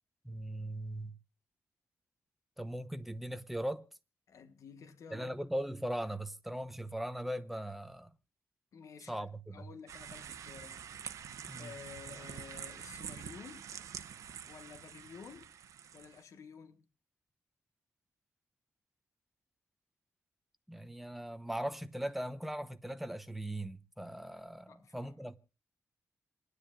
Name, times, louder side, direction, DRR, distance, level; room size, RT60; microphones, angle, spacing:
voice 1, 0.2-1.1 2.6-3.9 5.1-8.1 9.1-9.7 11.5-11.7 20.7-25.4, right 1 dB, 5° right, 0.8 m, -39 dB
voice 2, 4.3-5.3 8.7-9.3 9.5-10.8 11.6-13.7 14.5-15.5 15.9-16.8 24.7-25.2, left 6 dB, 75° left, 1.4 m, -52 dB
sound 1, 9.9-16.2, right 8 dB, 80° right, 0.9 m, -46 dB
28.0 x 9.8 x 2.4 m
cardioid pair, 110°, 5 cm